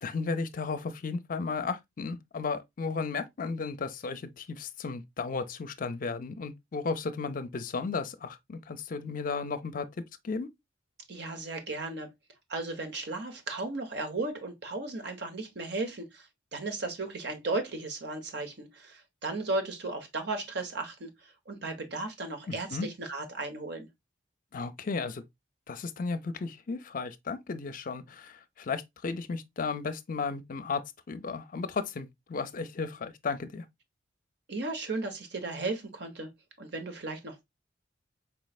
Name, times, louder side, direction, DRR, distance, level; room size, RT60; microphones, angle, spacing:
voice 1, 0.0-9.9 10.2-10.5 22.5-22.9 24.5-25.2 25.7-33.7, left 4 dB, 45° left, 0.5 m, -34 dB
voice 2, 11.1-12.1 12.5-16.3 16.5-23.9 34.5-36.3 36.6-37.4, right 2 dB, 60° right, 1.1 m, -35 dB
4.6 x 3.1 x 2.3 m
head